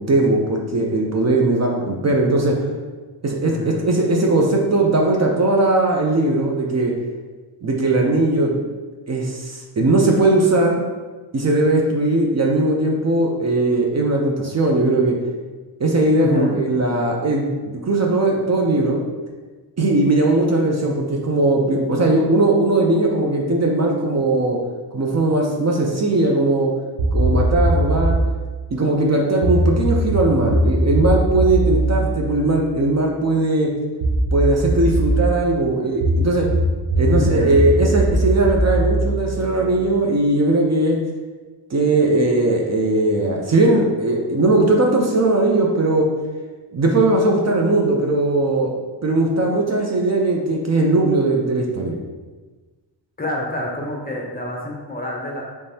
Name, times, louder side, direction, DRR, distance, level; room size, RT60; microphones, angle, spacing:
voice 1, 0.0-2.6 3.2-3.6 3.8-6.9 7.6-8.6 9.1-10.8 11.3-15.2 15.8-19.0 19.8-24.6 24.9-26.7 27.1-28.2 28.7-33.7 34.3-36.5 36.9-41.0 41.7-46.1 46.7-48.8 49.0-52.0, right 2 dB, 35° right, 0 dB, 0.6 m, -19 dB
voice 2, 3.4-3.8 16.2-16.5 37.1-37.6 53.2-55.4, left 1 dB, 20° left, -1 dB, 0.7 m, -27 dB
sound 1, 27.0-28.3 29.4-33.1 34.0-35.3 36.0-39.9, right 1 dB, 65° right, 1.0 m, -20 dB
5.1 x 3.3 x 2.7 m, 1.3 s
wide cardioid pair, 140°, 44 cm